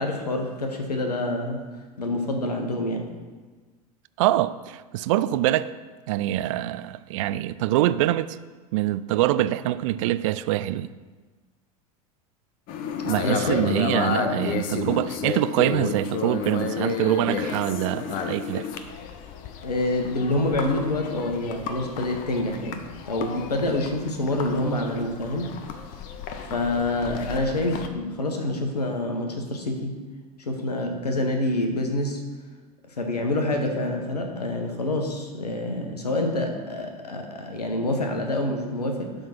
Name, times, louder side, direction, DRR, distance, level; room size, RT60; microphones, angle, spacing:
voice 1, 0.0-1.6 2.0-3.0 13.2-13.8 14.2-14.4 19.6-25.6 26.5-30.0 30.4-32.2 33.0-39.2, left 2 dB, 80° left, 1.3 m, -27 dB
voice 2, 4.2-5.7 6.1-8.4 8.7-10.9 13.1-18.7, right 14 dB, 55° right, 0.4 m, -24 dB
sound 1, 12.7-27.9, left 7 dB, 45° left, 0.9 m, -32 dB
11.5 x 3.9 x 6.0 m
figure-of-eight pair, 85°, 20 cm